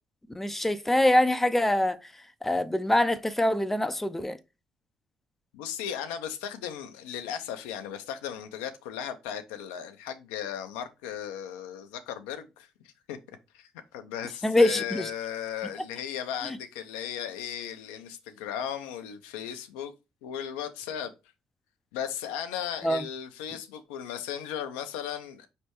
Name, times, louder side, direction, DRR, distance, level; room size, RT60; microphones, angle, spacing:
voice 1, 0.4-2.0 2.4-4.4 14.4-15.1 16.4-16.6 22.8-23.0, left 1 dB, 10° left, 0.5 m, -24 dB
voice 2, 5.5-12.7 13.1-13.2 13.5-19.9 20.2-21.1 21.9-25.5, left 9 dB, 80° left, 0.5 m, -36 dB
4.3 x 3.3 x 2.9 m
hypercardioid pair, 55°, 3 cm